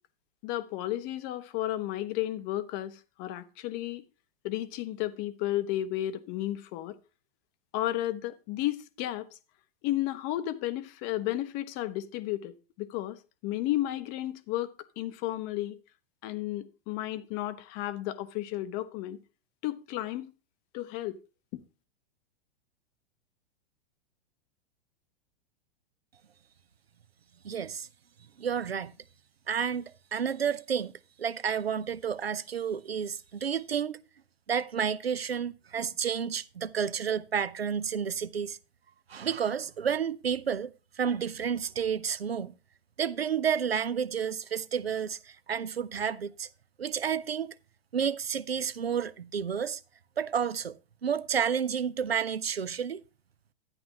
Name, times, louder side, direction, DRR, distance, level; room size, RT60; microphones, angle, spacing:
voice 1, 0.4-4.0 4.4-7.0 7.7-9.3 9.8-13.2 13.4-15.8 16.2-19.2 19.6-20.3 20.7-21.2, left 14 dB, 30° left, 0.7 m, -33 dB
voice 2, 27.4-27.9 28.4-28.9 29.5-30.9 31.2-34.0 34.5-38.6 39.1-40.7 41.0-42.5 43.0-46.5 46.8-47.5 47.9-49.8 50.2-50.8 51.0-53.0, right 7 dB, 80° right, 0.6 m, -30 dB
11.5 x 9.6 x 2.9 m
figure-of-eight pair, 100°, 30 cm